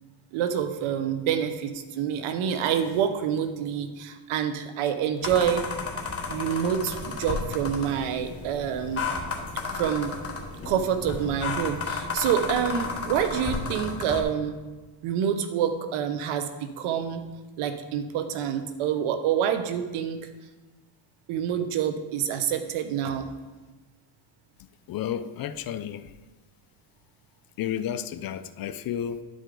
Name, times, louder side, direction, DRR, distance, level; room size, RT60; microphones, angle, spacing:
voice 1, 0.3-5.6 6.3-9.0 9.7-10.1 10.6-14.6 15.0-16.5 16.8-17.2 17.6-20.2 21.3-23.3, right 9 dB, 75° right, 0.9 m, -27 dB
sound 1, 5.2-14.2, left 4 dB, 30° left, 1.1 m, -33 dB
voice 2, 24.9-26.1 27.6-29.2, left 10 dB, 45° left, 0.5 m, -32 dB
11.0 x 5.1 x 3.8 m
cardioid pair, 105°, 49 cm